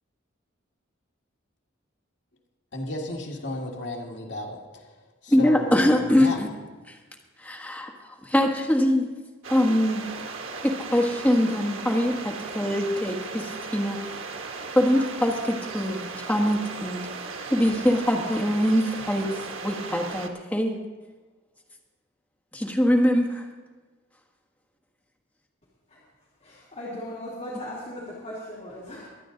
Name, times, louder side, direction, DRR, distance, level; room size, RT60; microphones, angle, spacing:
voice 1, 2.7-6.4, left 1 dB, 60° left, -1 dB, 1.8 m, -34 dB
voice 2, 5.3-6.5 7.4-7.9 8.2-9.1 9.5-10.0 10.6-14.0 14.7-17.0 17.5-19.3 19.6-20.8 22.5-23.4, equal, 5° left, 0 dB, 1.5 m, -23 dB
sound 1, 9.4-20.3, right 4 dB, 80° right, 1.3 m, -37 dB
voice 3, 26.4-29.1, left 1 dB, 35° left, -8 dB, 2.7 m, -38 dB
23.5 x 9.0 x 3.9 m, 1.3 s
head